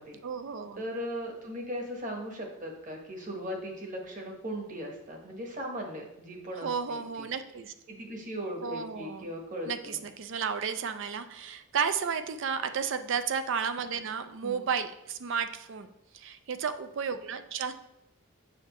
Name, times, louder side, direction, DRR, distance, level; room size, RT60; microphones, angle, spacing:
voice 1, 0.2-0.8 6.6-7.7 8.6-9.3 9.6-15.9 16.1-17.7, right 6 dB, 60° right, 10 dB, 0.4 m, -33 dB
voice 2, 0.8-7.3 7.9-10.0 14.4-14.7, equal, 40° right, 1 dB, 1.3 m, -38 dB
7.7 x 5.4 x 3.0 m, 0.84 s
head